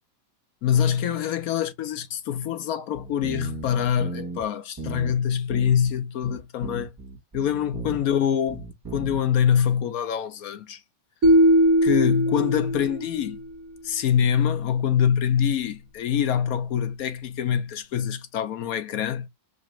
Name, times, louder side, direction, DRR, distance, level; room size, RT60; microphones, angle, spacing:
voice 1, 0.6-6.9 7.3-10.8 11.8-13.4 13.8-19.3, left 8 dB, 65° left, 1.0 m, -24 dB
sound 1, 2.9-4.5 4.8-5.2 5.5-6.0 6.2-8.2 8.5-9.2, right 3 dB, 20° right, 0.7 m, -36 dB
sound 2, 11.2-13.4, equal, 55° right, 1.4 m, -20 dB
5.0 x 2.3 x 3.1 m
omnidirectional pair, 1.8 m